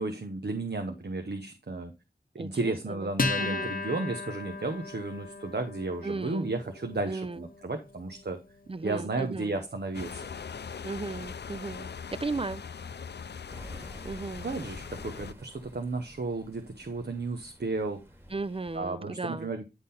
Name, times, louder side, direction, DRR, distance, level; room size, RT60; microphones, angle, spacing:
voice 1, 0.0-1.9 2.3-8.4 8.8-10.2 14.4-18.0 18.7-19.6, right 3 dB, 80° right, 0.8 m, -33 dB
voice 2, 2.4-3.1 3.4-3.8 6.0-6.5 7.1-7.5 8.7-9.6 10.8-12.6 14.0-14.5 18.3-19.5, right 3 dB, 35° right, 0.4 m, -36 dB
Acoustic guitar, 3.2-10.0, left 3 dB, 55° left, 0.7 m, -37 dB
sound 1, 9.9-15.3, left 6 dB, 85° left, 0.4 m, -41 dB
sound 2, 13.5-18.8, equal, 15° right, 1.6 m, -50 dB
10.0 x 3.8 x 4.1 m
wide cardioid pair, 55°, 17 cm